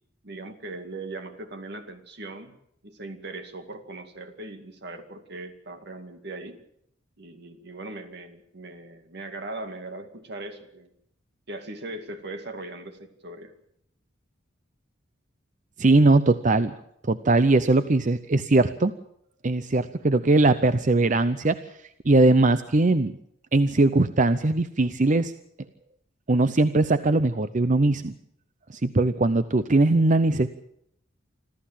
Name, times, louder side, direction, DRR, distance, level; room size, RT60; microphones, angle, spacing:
voice 1, 0.2-2.6 2.8-6.6 7.2-10.9 11.5-13.5, right 2 dB, 60° right, 7 dB, 2.3 m, -39 dB
voice 2, 15.8-16.7 17.0-18.9 19.4-21.6 22.0-23.2 23.5-25.3 26.3-28.1 28.7-30.5, right 2 dB, 40° right, 12 dB, 0.7 m, -20 dB
26.0 x 14.0 x 7.4 m, 0.75 s
head